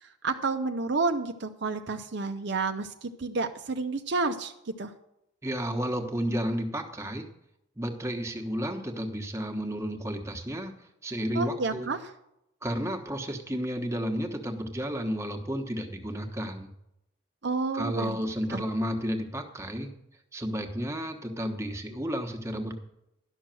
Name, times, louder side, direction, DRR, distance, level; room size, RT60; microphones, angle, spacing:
voice 1, 0.0-4.9 11.3-12.1 17.4-18.2 18.5-18.6, right 3 dB, 55° right, 6 dB, 0.6 m, -30 dB
voice 2, 5.4-7.3 7.8-10.7 11.0-11.9 12.6-16.7 17.7-19.9 20.3-22.8, equal, 15° right, 4 dB, 1.2 m, -32 dB
11.5 x 6.3 x 7.6 m, 0.84 s
head